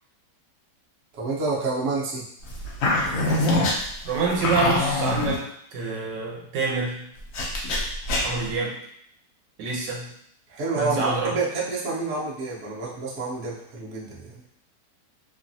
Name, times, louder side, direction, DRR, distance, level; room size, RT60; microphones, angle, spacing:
voice 1, 1.1-2.3 10.5-14.4, right 3 dB, 55° right, -5 dB, 0.9 m, -28 dB
sound 1, 2.5-5.4 7.3-8.5, left 2 dB, 65° left, 0.9 m, -24 dB
voice 2, 4.0-7.1 8.2-8.8 9.6-10.1 10.7-11.3, right 4 dB, 85° right, -2 dB, 1.4 m, -27 dB
3.1 x 2.3 x 2.6 m, 0.68 s
omnidirectional pair, 1.9 m